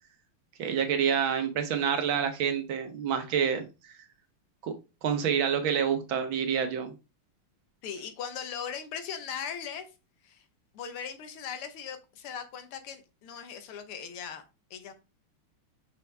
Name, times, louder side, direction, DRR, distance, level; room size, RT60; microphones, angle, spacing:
voice 1, 0.6-3.7 4.6-4.7 5.0-6.9, right 7 dB, 70° right, 1.8 m, -27 dB
voice 2, 7.8-9.9 10.2-10.5 10.7-14.4 14.7-14.9, left 7 dB, 85° left, 2.0 m, -39 dB
6.1 x 5.5 x 3.4 m
omnidirectional pair, 2.3 m